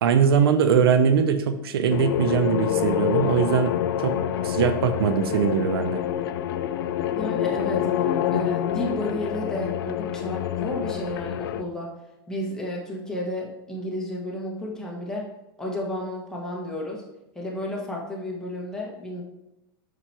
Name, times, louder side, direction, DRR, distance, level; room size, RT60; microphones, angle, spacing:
voice 1, 0.0-3.7 4.0-4.1 4.4-6.0, right 7 dB, 80° right, 10 dB, 0.6 m, -21 dB
sound 1, 1.9-11.6, left 10 dB, 70° left, 0.4 m, -27 dB
voice 2, 7.2-12.0 12.3-15.3 15.6-17.0 17.4-19.2, left 1 dB, 5° left, -3 dB, 1.7 m, -32 dB
6.8 x 6.1 x 3.0 m, 0.91 s
hypercardioid pair, 120°, 13 cm